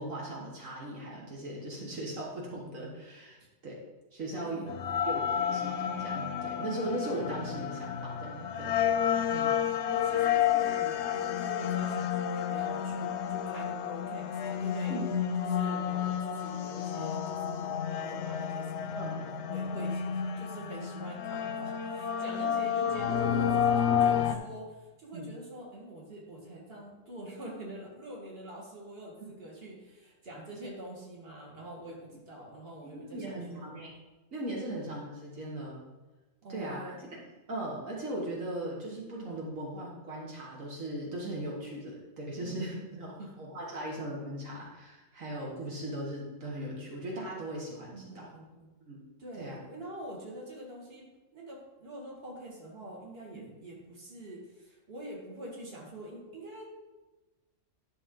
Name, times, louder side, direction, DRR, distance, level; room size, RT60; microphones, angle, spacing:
voice 1, 0.0-3.4 3.6-3.8 4.1-4.7 5.1-9.5 14.9-15.1 19.0-19.2 23.8-24.0 25.1-25.3 32.8-33.9 34.3-35.8 36.5-37.2 37.5-48.3 48.8-49.0 49.4-49.6 53.3-53.4, right 1 dB, 85° right, -3 dB, 1.9 m, -38 dB
voice 2, 4.4-5.4 9.1-9.5 9.9-15.0 15.4-33.8 36.4-37.0 42.4-43.5 47.9-48.7 49.2-51.0 51.3-56.7, right 1 dB, 50° right, -2 dB, 2.2 m, -45 dB
sound 1, 4.7-24.4, left 8 dB, 65° left, 0.8 m, -30 dB
11.0 x 6.2 x 3.8 m, 1.1 s
omnidirectional pair, 1.3 m